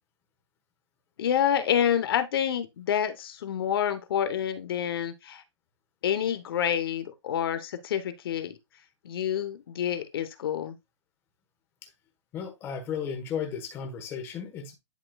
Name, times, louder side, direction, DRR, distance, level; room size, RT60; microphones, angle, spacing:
voice 1, 1.2-5.4 6.0-8.6 9.0-10.7, left 9 dB, 50° left, 1.0 m, -28 dB
voice 2, 12.3-14.7, left 7 dB, 15° left, 1.3 m, -34 dB
10.5 x 4.3 x 2.3 m
hypercardioid pair, 170°, 15 cm